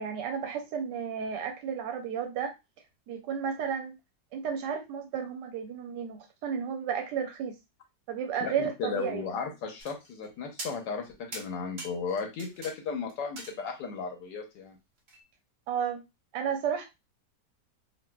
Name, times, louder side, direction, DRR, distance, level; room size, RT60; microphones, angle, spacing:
voice 1, 0.0-2.5 3.1-4.0 4.3-7.5 8.1-9.2 15.7-16.0 16.3-16.8, right 7 dB, 90° right, 3 dB, 1.3 m, -32 dB
voice 2, 8.4-14.8, left 5 dB, 85° left, 2 dB, 1.4 m, -35 dB
sound 1, 9.8-10.3 10.6-11.0 11.3-12.7 13.1-14.0 15.1-15.2, right 2 dB, 45° right, 0.6 m, -43 dB
4.1 x 2.3 x 2.2 m, 0.23 s
omnidirectional pair, 1.8 m